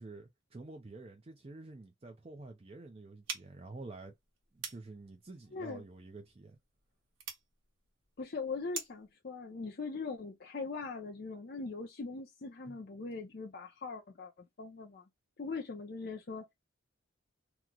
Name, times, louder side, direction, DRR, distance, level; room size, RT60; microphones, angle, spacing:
voice 1, 0.0-4.1 4.5-6.6 12.7-12.8, right 2 dB, 30° right, 0.4 m, -49 dB
sound 1, 3.2-9.1, right 6 dB, 80° right, 1.1 m, -47 dB
voice 2, 5.5-5.8 8.2-15.0 15.4-16.5, left 4 dB, 50° left, 0.5 m, -41 dB
3.0 x 2.0 x 3.6 m
head